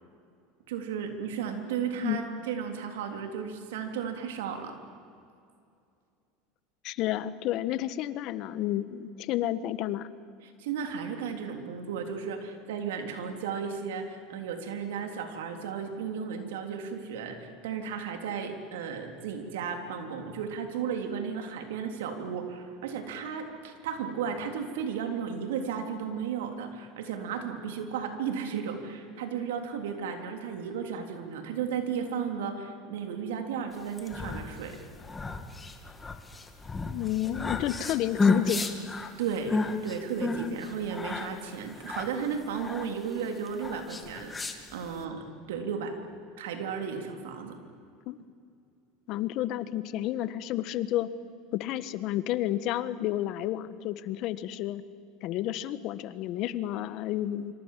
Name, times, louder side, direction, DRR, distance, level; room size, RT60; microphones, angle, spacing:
voice 1, 0.7-4.8 10.4-34.8 39.2-46.0 46.4-47.6, right 7 dB, 90° right, 5 dB, 3.5 m, -34 dB
voice 2, 6.8-10.1 36.8-38.7 48.1-48.2 49.1-51.1 51.5-54.8 55.2-57.5, left 13 dB, 60° left, 15 dB, 1.3 m, -31 dB
sound 1, 33.8-45.0, left 3 dB, 15° left, 2.5 m, -32 dB
26.0 x 26.0 x 7.6 m, 2.4 s
supercardioid pair, 110°, 0 cm